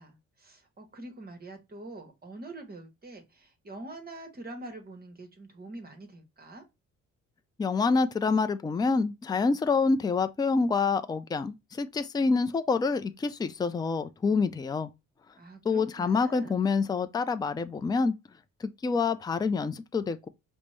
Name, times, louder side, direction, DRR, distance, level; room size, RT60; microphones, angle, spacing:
voice 1, 0.0-6.6 15.4-16.6, right 2 dB, 30° right, 1.1 m, -45 dB
voice 2, 7.6-14.9 15.7-18.1 18.6-20.3, left 4 dB, 15° left, 0.4 m, -27 dB
5.1 x 2.1 x 3.1 m
cardioid pair, 90°, 30 cm